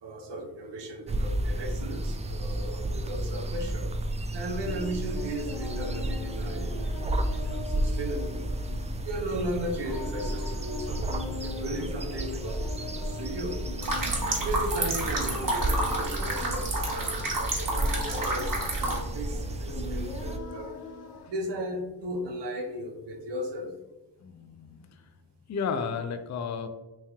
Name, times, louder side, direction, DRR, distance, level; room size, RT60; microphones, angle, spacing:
voice 1, 0.0-3.9 4.3-6.9 7.3-8.4 9.0-13.6 14.4-20.7 21.3-23.7, right 1 dB, 65° right, 3 dB, 0.9 m, -36 dB
sound 1, 1.1-20.4, right 1 dB, 15° right, 0.3 m, -32 dB
Singing, 4.6-21.3, left 3 dB, 55° left, 1.0 m, -42 dB
sound 2, 13.8-19.0, right 2 dB, 45° right, 1.3 m, -30 dB
voice 2, 24.2-24.9 25.5-26.7, left 6 dB, 40° left, 8 dB, 0.5 m, -32 dB
3.1 x 2.8 x 3.5 m, 1.0 s
supercardioid pair, 45°, 45 cm